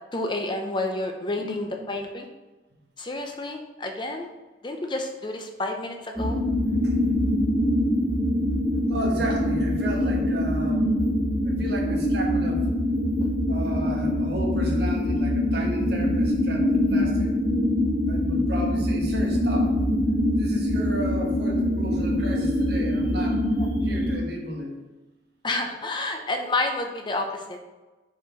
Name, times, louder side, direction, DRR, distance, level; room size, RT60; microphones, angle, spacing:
voice 1, 0.1-2.3 3.0-4.3 4.6-6.4 13.2-13.3 23.6-23.7 25.4-27.7, left 2 dB, 25° left, 4 dB, 0.6 m, -30 dB
voice 2, 1.4-1.7 6.8-7.0 8.9-10.9 11.4-12.7 13.5-17.3 18.1-19.7 20.4-23.4 23.8-24.8, right 1 dB, 60° right, 0 dB, 1.3 m, -34 dB
sound 1, 6.2-24.2, left 1 dB, 10° right, 1.2 m, -24 dB
5.2 x 4.3 x 5.1 m, 1.2 s
head